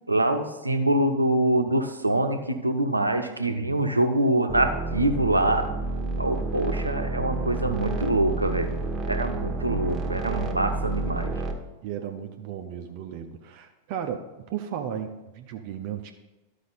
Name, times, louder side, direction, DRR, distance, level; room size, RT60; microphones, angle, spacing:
voice 1, 0.1-5.6 6.2-8.8 9.1-11.3, right 1 dB, 85° right, 6 dB, 0.7 m, -24 dB
voice 2, 3.5-3.8 11.8-16.1, right 9 dB, 45° right, 5 dB, 0.6 m, -35 dB
sound 1, 4.5-11.5, right 3 dB, 25° right, 1.1 m, -30 dB
12.5 x 5.0 x 4.1 m, 1.1 s
figure-of-eight pair, 90°, 0 cm